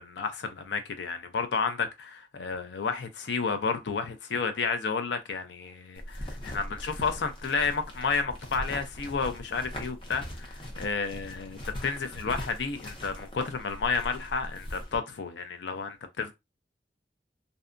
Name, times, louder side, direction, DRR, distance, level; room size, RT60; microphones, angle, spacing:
voice 1, 0.0-16.3, left 5 dB, 85° left, 0.5 m, -31 dB
sound 1, 6.0-15.0, equal, 30° left, 0.6 m, -40 dB
2.7 x 2.2 x 2.5 m
head